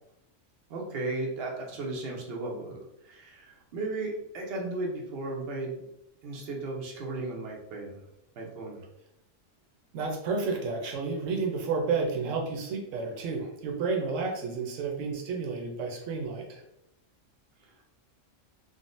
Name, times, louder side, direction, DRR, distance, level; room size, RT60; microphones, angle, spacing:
voice 1, 0.7-5.9 6.2-8.0 8.4-8.8, right 2 dB, 60° right, -1 dB, 0.9 m, -35 dB
voice 2, 9.9-16.6, right 4 dB, 85° right, 2 dB, 0.9 m, -31 dB
3.7 x 2.0 x 2.5 m, 0.80 s
omnidirectional pair, 1.3 m